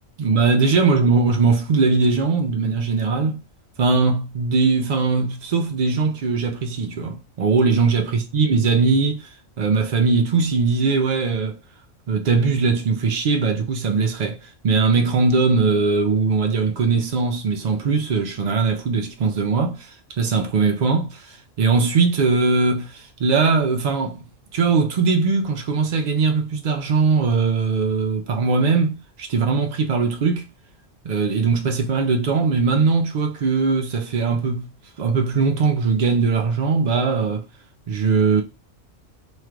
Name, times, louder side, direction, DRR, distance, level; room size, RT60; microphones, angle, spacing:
voice 1, 0.2-3.4 3.8-9.3 9.6-11.6 12.1-24.2 24.5-30.4 31.0-34.7 35.0-37.5 37.9-38.4, right 4 dB, 85° right, 0.3 m, -20 dB
3.1 x 2.4 x 4.4 m
omnidirectional pair, 1.4 m